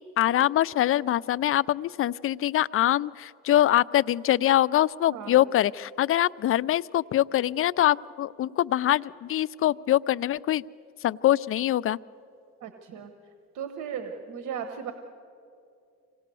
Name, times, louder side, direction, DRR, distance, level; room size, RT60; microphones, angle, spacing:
voice 1, 0.0-10.6 11.0-12.0, left 13 dB, 45° left, 18 dB, 0.4 m, -24 dB
voice 2, 5.1-5.4 12.6-13.1 13.5-14.9, right 8 dB, 85° right, 7 dB, 1.2 m, -36 dB
25.5 x 18.0 x 6.9 m, 2.6 s
cardioid pair, 90°, 30 cm